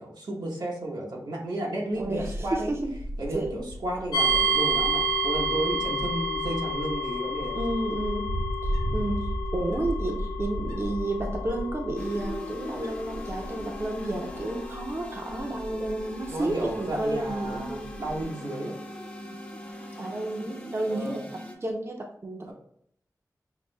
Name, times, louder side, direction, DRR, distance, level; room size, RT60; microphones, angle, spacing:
voice 1, 0.0-2.7 3.2-7.6 16.3-18.8 20.9-21.2 22.5-22.6, right 1 dB, 90° right, -2 dB, 1.0 m, -33 dB
Wind, 1.9-18.2, equal, 65° right, 0.9 m, -36 dB
voice 2, 2.0-3.0 3.3-3.6 7.5-8.3 8.6-17.9 20.0-22.5, right 2 dB, 40° right, 1 dB, 0.5 m, -31 dB
sound 1, 4.1-19.0, right 1 dB, 80° left, 0.8 m, -31 dB
sound 2, 12.0-21.6, equal, 20° left, 0.6 m, -42 dB
5.7 x 2.5 x 2.2 m, 0.70 s
wide cardioid pair, 85°, 7 cm